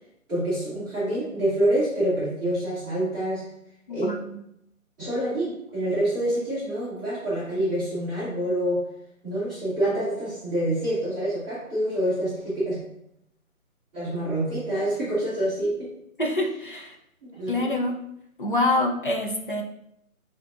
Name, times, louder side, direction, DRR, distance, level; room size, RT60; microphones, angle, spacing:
voice 1, 0.3-3.4 3.9-4.1 5.0-8.8 9.2-12.8 13.9-15.9 17.2-17.7, right 1 dB, 5° right, -19 dB, 1.0 m, -26 dB
voice 2, 16.2-17.0 17.5-17.9 18.4-19.6, left 2 dB, 40° left, 1 dB, 0.5 m, -25 dB
6.4 x 2.8 x 2.4 m, 0.79 s
hypercardioid pair, 165°, 43 cm